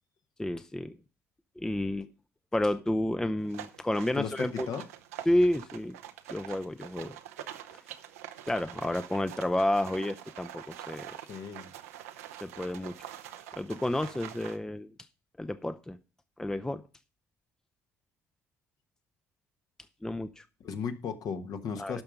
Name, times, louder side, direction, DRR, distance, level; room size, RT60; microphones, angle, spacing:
voice 1, 0.4-1.0 1.6-2.1 2.5-4.7 5.3-6.0 6.3-7.2 8.5-11.2 12.4-12.9 13.5-14.9 15.4-16.0 16.4-16.8 20.0-20.5 21.8-22.0, left 1 dB, 10° left, 11 dB, 0.6 m, -30 dB
sound 1, 3.4-14.6, right 11 dB, 80° right, 0.7 m, -45 dB
voice 2, 4.2-4.8 11.3-11.7 20.6-22.0, left 6 dB, 55° left, 8 dB, 1.2 m, -35 dB
12.0 x 5.7 x 5.2 m, 0.34 s
hypercardioid pair, 55°, 8 cm